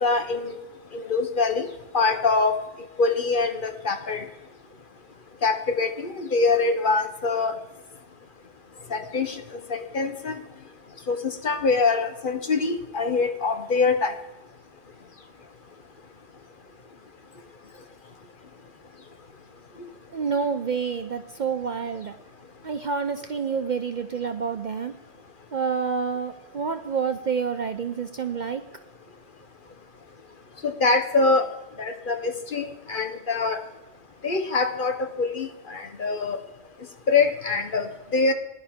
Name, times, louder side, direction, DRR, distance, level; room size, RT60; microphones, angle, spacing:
voice 1, 0.0-0.5 0.9-1.7 1.9-2.6 3.0-4.2 5.4-7.5 8.9-9.3 9.7-10.3 11.1-14.1 30.6-31.5 31.8-33.6 34.2-36.4 37.1-38.3, left 4 dB, 45° left, 7 dB, 1.1 m, -24 dB
voice 2, 20.1-22.2 22.6-24.9 25.5-28.6, right 5 dB, 50° right, 8 dB, 0.6 m, -28 dB
19.5 x 11.0 x 3.6 m, 1.1 s
omnidirectional pair, 1.2 m